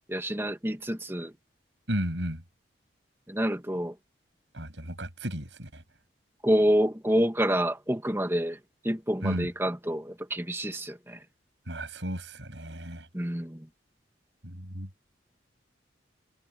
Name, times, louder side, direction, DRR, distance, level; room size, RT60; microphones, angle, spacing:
voice 1, 0.1-1.3 3.3-3.9 6.4-8.6 8.8-11.2 13.1-13.7, equal, 15° right, 1.8 m, -27 dB
voice 2, 1.9-2.4 4.5-5.8 9.2-9.5 11.7-13.1 14.4-14.9, right 1 dB, 70° right, 6.8 m, -33 dB
head